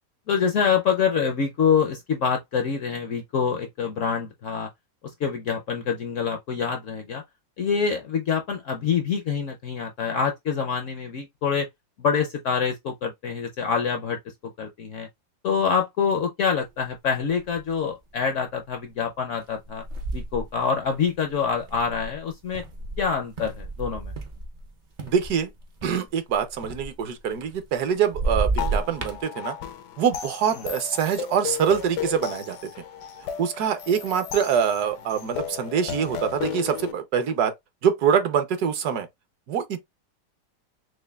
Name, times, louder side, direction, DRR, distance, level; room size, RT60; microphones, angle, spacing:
voice 1, 0.3-4.7 5.2-7.2 7.6-11.7 12.0-14.2 14.6-15.1 15.4-19.8 20.1-22.6 23.0-24.1, left 6 dB, 65° left, 0.8 m, -26 dB
sound 1, 16.8-16.9 17.3-17.8 18.3-18.5 19.4-24.7 25.0-27.8 28.1-29.2, right 3 dB, 55° right, 0.5 m, -31 dB
voice 2, 25.0-25.5 25.8-29.6 30.0-32.6 33.4-37.5 37.8-39.1 39.5-39.8, right 8 dB, 70° right, 1.2 m, -24 dB
sound 2, 28.6-36.9, left 8 dB, 85° left, 1.3 m, -34 dB
6.4 x 2.2 x 2.3 m
omnidirectional pair, 1.8 m